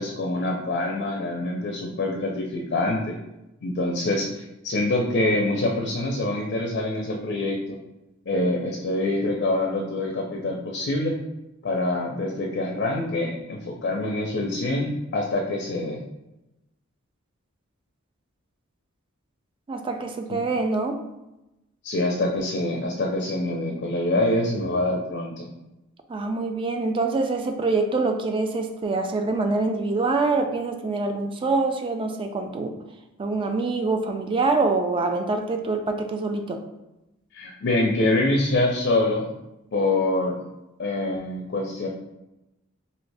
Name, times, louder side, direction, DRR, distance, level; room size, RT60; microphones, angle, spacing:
voice 1, 0.0-3.1 3.6-7.8 8.3-11.2 11.6-16.0 20.3-20.4 21.8-25.5 37.3-39.3 39.7-40.4 40.8-41.9, left 2 dB, 50° left, 0 dB, 0.4 m, -25 dB
voice 2, 19.7-21.0 26.1-32.8 33.2-36.6, right 3 dB, 25° right, 5 dB, 0.3 m, -25 dB
2.7 x 2.6 x 3.2 m, 0.94 s
head